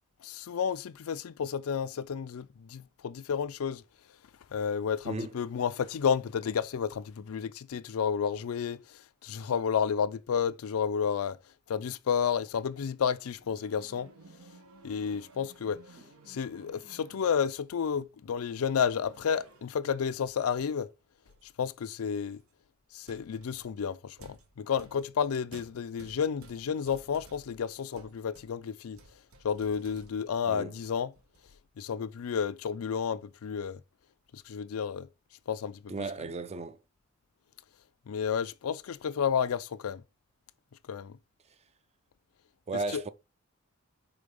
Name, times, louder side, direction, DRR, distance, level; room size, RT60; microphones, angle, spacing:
voice 1, 0.2-3.8 4.5-11.4 11.7-14.1 14.8-15.8 16.3-20.9 21.6-22.4 22.9-29.0 29.4-31.1 31.8-33.8 34.3-35.1 35.5-35.9 38.1-40.0 40.9-41.2 42.9-43.0, left 7 dB, 85° left, 0.4 m, -31 dB
sound 1, 13.4-17.6 18.8-19.8 20.1-20.6 21.2-21.5 22.4-22.5 23.0-30.4 30.8-31.6, right 2 dB, 85° right, 1.2 m, -56 dB
voice 2, 35.9-36.8 42.7-43.1, right 3 dB, 30° right, 0.5 m, -35 dB
5.0 x 3.7 x 5.3 m
head